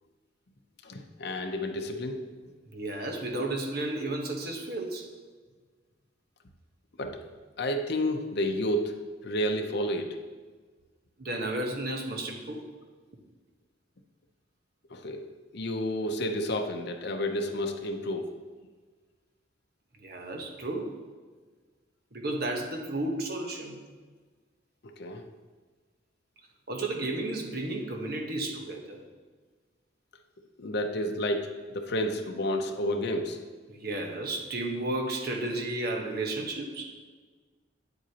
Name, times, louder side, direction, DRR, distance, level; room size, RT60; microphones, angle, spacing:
voice 1, 0.8-2.2 7.0-7.3 7.6-9.0 9.2-10.2 14.9-15.2 15.5-18.3 24.8-25.2 30.6-33.4, left 1 dB, 60° left, 4 dB, 0.7 m, -30 dB
voice 2, 2.7-5.1 11.2-12.6 20.0-20.9 22.1-23.8 26.7-29.0 33.7-36.9, right 2 dB, 55° right, 2 dB, 1.1 m, -33 dB
8.8 x 7.9 x 2.9 m, 1.4 s
head